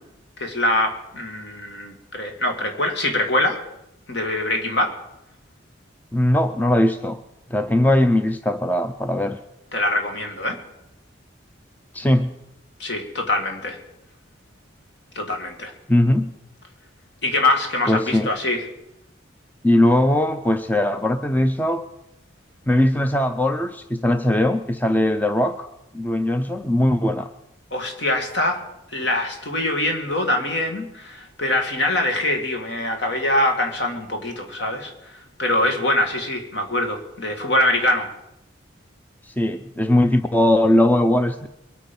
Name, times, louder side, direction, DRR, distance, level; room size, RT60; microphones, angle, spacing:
voice 1, 0.4-3.7 4.1-5.0 9.7-10.6 12.8-13.8 15.2-15.7 17.2-18.6 27.7-28.6 28.9-34.9 35.4-38.1, left 1 dB, 65° left, 4 dB, 2.2 m, -23 dB
voice 2, 6.1-7.2 7.5-9.4 11.9-12.4 15.9-16.3 17.9-18.3 19.6-21.9 22.7-25.7 25.9-27.3 39.2-41.5, left 1 dB, 10° left, 8 dB, 0.5 m, -20 dB
23.0 x 8.9 x 5.4 m, 0.87 s
head